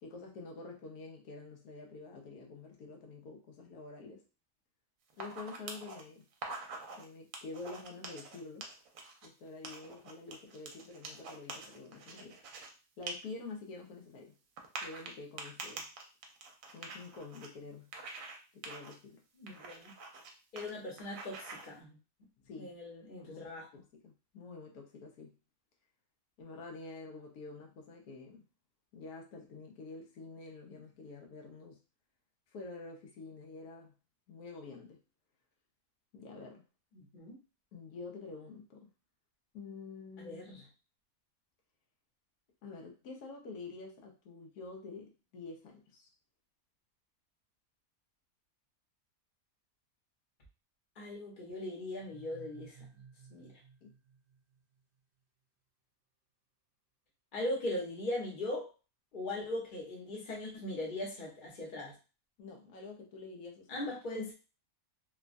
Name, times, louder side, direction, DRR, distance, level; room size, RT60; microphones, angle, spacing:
voice 1, 0.0-4.2 5.2-6.2 6.9-8.7 9.2-12.4 13.0-14.3 14.8-15.9 16.7-17.9 18.5-19.2 22.4-22.8 23.2-25.4 26.4-28.4 28.9-31.8 32.5-33.9 34.3-35.0 36.1-36.6 37.7-38.9 39.5-40.6 42.6-46.1 53.8-53.9 59.4-59.5 62.4-63.8 64.1-64.3, left 3 dB, 85° left, 1 dB, 1.1 m, -48 dB
sound 1, 5.1-6.0 6.3-7.0 7.3-9.3 9.6-12.7 13.0-13.1 13.5-13.6 14.6-17.5 17.9-18.4 18.6-18.9 19.5-20.3 20.6-20.7 21.0-21.7, right 3 dB, 75° right, 1.0 m, -45 dB
voice 2, 19.4-19.9 20.5-22.0 22.6-23.7 36.9-37.4 40.2-40.6 51.0-52.8 53.3-53.5 57.3-58.7 59.1-62.0 63.7-64.3, left 1 dB, 40° left, -2 dB, 0.9 m, -39 dB
sound 2, 52.0-54.8, right 6 dB, 45° right, 0.6 m, -56 dB
3.0 x 2.2 x 2.5 m, 0.33 s
omnidirectional pair, 1.5 m